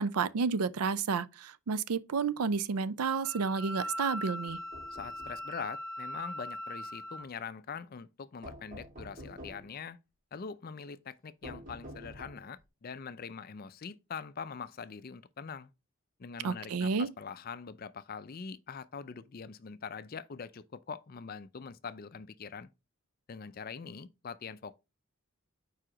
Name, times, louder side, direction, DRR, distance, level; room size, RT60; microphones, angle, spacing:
voice 1, 0.0-4.6 16.4-17.1, right 5 dB, 85° right, 0.5 m, -31 dB
Wind instrument woodwind instrument, 3.2-7.3, equal, 70° right, 1.4 m, -40 dB
sound 1, 4.4-5.4 8.4-9.8 11.4-12.6, equal, 35° right, 1.7 m, -48 dB
voice 2, 4.9-10.0 10.3-15.7 16.2-22.7 23.3-24.8, left 6 dB, 40° left, 0.4 m, -43 dB
4.9 x 4.7 x 4.9 m
head